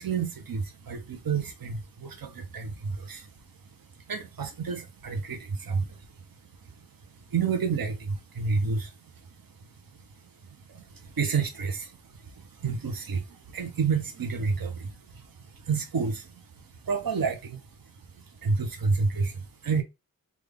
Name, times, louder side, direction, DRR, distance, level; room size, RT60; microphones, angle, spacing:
voice 1, 0.0-19.8, right 5 dB, 85° right, 0.7 m, -31 dB
3.6 x 2.3 x 3.4 m
wide cardioid pair, 75°, 34 cm